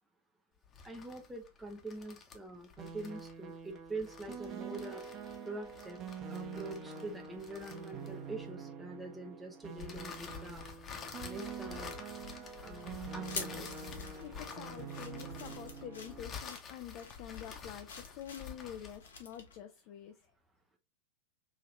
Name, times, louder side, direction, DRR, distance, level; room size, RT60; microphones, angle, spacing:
sound 1, 0.6-8.4 9.8-19.1, left 6 dB, 25° left, 0.9 m, -49 dB
voice 1, 0.8-5.1 5.4-6.0 6.3-10.9 11.2-11.9 12.6-13.7, right 2 dB, 5° right, 0.6 m, -45 dB
sound 2, 2.8-16.3, right 6 dB, 35° right, 1.0 m, -46 dB
sound 3, 12.7-19.6, left 4 dB, 70° left, 1.0 m, -48 dB
voice 2, 14.2-20.3, left 10 dB, 45° left, 0.5 m, -47 dB
4.9 x 2.8 x 2.6 m
figure-of-eight pair, 90°, 0 cm